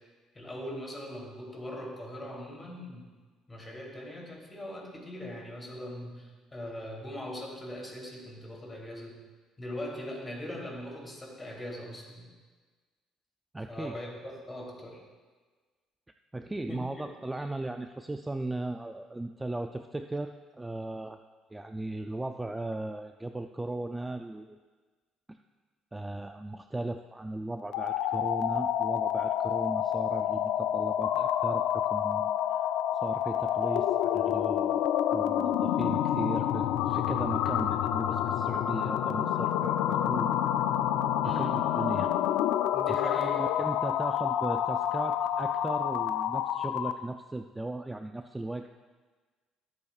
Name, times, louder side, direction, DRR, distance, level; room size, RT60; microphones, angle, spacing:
voice 1, 0.3-3.1 3.5-9.1 9.6-12.3 13.7-15.0 16.7-17.1 41.2-41.7 42.7-43.4, left 1 dB, 20° left, -2 dB, 3.2 m, -40 dB
voice 2, 13.5-14.0 16.3-21.2 21.5-24.6 25.9-32.6 33.0-34.8 35.1-40.3 41.2-42.1 42.9-48.7, right 2 dB, 10° right, 6 dB, 0.4 m, -37 dB
sound 1, 27.6-47.0, left 10 dB, 85° left, 0.5 m, -28 dB
23.5 x 8.3 x 2.4 m, 1.4 s
cardioid pair, 105°, 0 cm